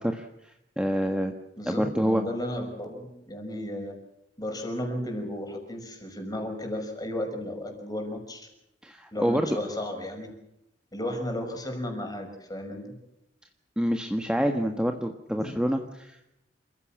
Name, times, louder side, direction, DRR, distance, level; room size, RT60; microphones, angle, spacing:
voice 1, 0.8-1.3 1.7-2.2 8.8-9.6 13.8-16.4, equal, 5° right, 4 dB, 1.4 m, -27 dB
voice 2, 1.6-4.0 4.4-8.5 9.1-10.3 10.9-12.8 15.4-15.6, left 1 dB, 20° left, 3 dB, 6.0 m, -34 dB
28.5 x 15.5 x 7.4 m, 0.85 s
head